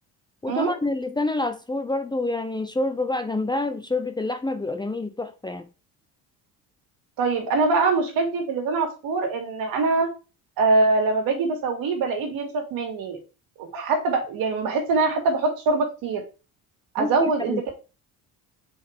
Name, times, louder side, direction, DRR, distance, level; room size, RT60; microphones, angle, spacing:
voice 1, 0.4-5.7 17.0-17.6, left 2 dB, 10° left, 0.7 m, -27 dB
voice 2, 7.2-10.1 10.6-13.2 13.6-16.2 16.9-17.7, right 3 dB, 70° right, 2.5 m, -23 dB
6.4 x 5.0 x 3.7 m
cardioid pair, 95°, 36 cm